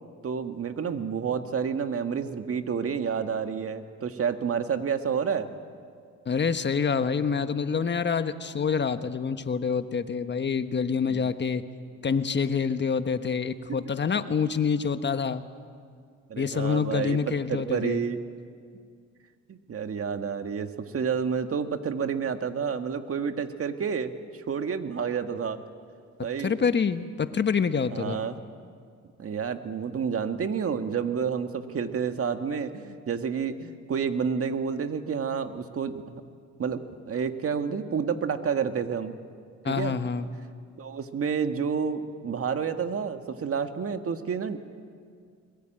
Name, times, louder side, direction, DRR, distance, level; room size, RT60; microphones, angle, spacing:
voice 1, 0.2-5.5 11.1-11.3 16.3-17.2 17.5-18.2 19.5-25.6 26.2-26.5 27.9-28.4 29.2-36.2 36.6-39.1 39.7-40.0 40.8-44.6, right 6 dB, 50° right, 8 dB, 1.7 m, -29 dB
voice 2, 6.3-11.6 12.0-15.4 16.4-18.0 26.4-28.2 39.6-40.3, left 6 dB, 35° left, 10 dB, 1.3 m, -27 dB
22.0 x 22.0 x 9.1 m, 2.1 s
cardioid pair, 90°, 30 cm